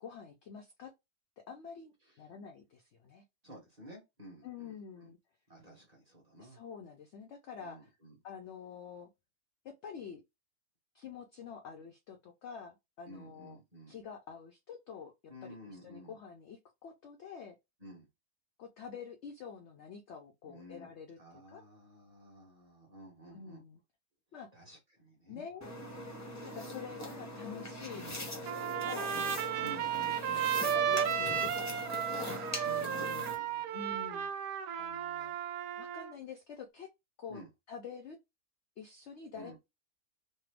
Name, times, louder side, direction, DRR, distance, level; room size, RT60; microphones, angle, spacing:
voice 1, 0.0-0.9 1.5-3.2 4.4-5.2 6.4-7.9 8.2-9.1 9.6-10.2 10.9-13.6 13.9-15.1 15.4-17.6 18.6-21.6 23.3-23.8 24.3-24.5 25.3-25.8 26.4-29.1 30.5-32.3 33.7-34.3 34.8-35.4 35.8-36.9 37.2-37.4 37.7-38.2 38.8-39.6, left 6 dB, 80° left, 0.6 m, -47 dB
voice 2, 3.4-5.1 5.5-6.6 7.6-8.2 13.0-13.9 15.3-16.1 17.8-18.1 20.4-20.9 21.2-23.6 24.5-25.5 27.9-28.2 29.1-30.5 32.6-33.7 37.3-37.5 39.3-39.6, equal, 30° right, 0.9 m, -52 dB
sound 1, 25.6-33.4, left 1 dB, 25° left, 0.3 m, -41 dB
Trumpet, 28.4-36.1, right 9 dB, 85° right, 1.2 m, -34 dB
3.3 x 2.0 x 3.2 m
omnidirectional pair, 1.7 m